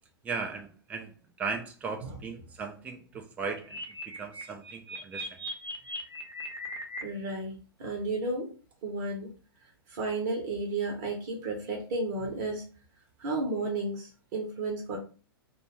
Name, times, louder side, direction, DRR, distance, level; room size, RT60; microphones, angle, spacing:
voice 1, 0.2-1.1 1.4-3.8 4.2-5.2, right 4 dB, 10° right, 4 dB, 0.3 m, -37 dB
sound 1, 3.6-7.0, equal, 80° right, 0.6 m, -39 dB
voice 2, 7.0-8.5 8.8-9.3 9.9-12.6 13.2-15.0, right 2 dB, 45° right, 1 dB, 0.8 m, -33 dB
2.5 x 2.2 x 2.9 m, 0.37 s
figure-of-eight pair, 100°, 13 cm